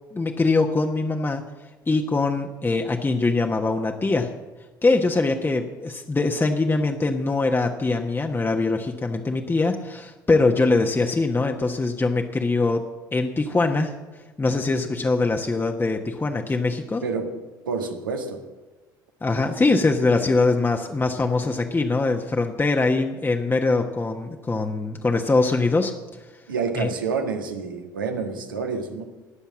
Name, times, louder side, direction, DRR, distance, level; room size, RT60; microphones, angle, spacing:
voice 1, 0.1-1.4 1.9-4.3 4.8-12.8 13.1-13.9 14.4-17.0 19.2-25.9 26.8-26.9, left 3 dB, 20° left, 3 dB, 1.2 m, -22 dB
voice 2, 17.6-18.4 26.5-29.0, right 5 dB, 85° right, 3 dB, 1.6 m, -28 dB
20.0 x 7.2 x 7.3 m, 1.2 s
figure-of-eight pair, 55°, 11 cm